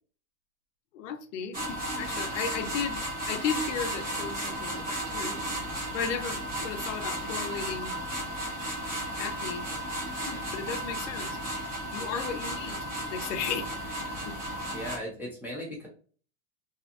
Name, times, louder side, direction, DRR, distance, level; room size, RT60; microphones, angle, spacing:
voice 1, 0.9-5.5 5.9-8.0 9.2-9.7 10.2-11.4 11.9-14.4, left 7 dB, 70° left, 0.5 m, -35 dB
sound 1, 1.5-15.0, right 1 dB, 20° right, 0.9 m, -34 dB
voice 2, 14.7-15.9, equal, 5° right, 0.5 m, -37 dB
2.7 x 2.4 x 2.3 m
supercardioid pair, 150°, 39 cm